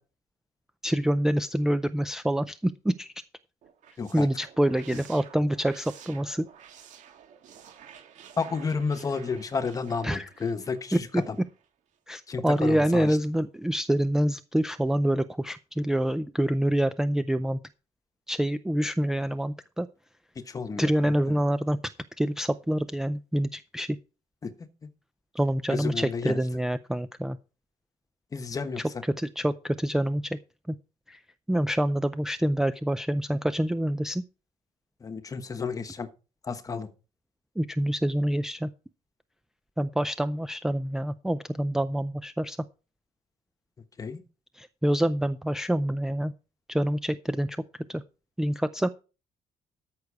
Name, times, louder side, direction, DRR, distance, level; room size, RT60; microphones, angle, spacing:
voice 1, 0.8-3.1 4.1-6.5 10.0-10.3 12.1-17.6 18.3-19.9 20.8-21.8 22.2-24.0 25.3-27.4 28.8-28.9 29.2-30.4 30.7-30.8 31.1-31.2 31.5-34.2 37.6-38.7 39.8-42.6 44.6-46.3 46.7-47.6 47.9-48.0 48.4-48.9, right 1 dB, 5° right, 12 dB, 0.4 m, -26 dB
sound 1, 3.6-11.7, right 8 dB, 65° right, 2.2 m, -52 dB
voice 2, 8.4-11.4 12.3-13.2 20.3-21.4 24.4-24.5 25.7-26.4 28.3-29.0 35.0-36.1 36.4-36.9 44.0-44.2, left 5 dB, 25° left, 10 dB, 1.2 m, -32 dB
13.5 x 6.5 x 4.7 m, 0.33 s
cardioid pair, 155°, 14 cm